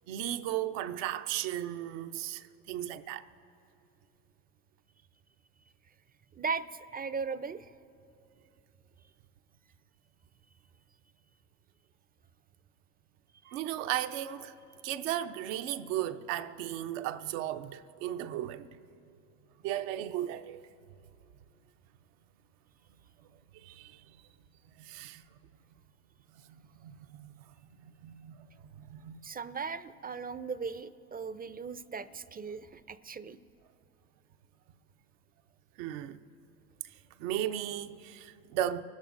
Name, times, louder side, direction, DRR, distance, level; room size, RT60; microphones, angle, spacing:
voice 1, 0.1-3.3 13.5-14.5 14.8-18.8 19.6-20.7 23.5-24.2 24.8-25.2 26.5-27.5 27.8-29.2 35.8-36.2 37.2-38.8, right 12 dB, 75° right, 0.7 m, -36 dB
voice 2, 6.3-7.7 13.4-13.6 29.2-33.4, right 5 dB, 25° right, 0.5 m, -38 dB
25.5 x 12.5 x 2.6 m
hypercardioid pair, 55°, 40 cm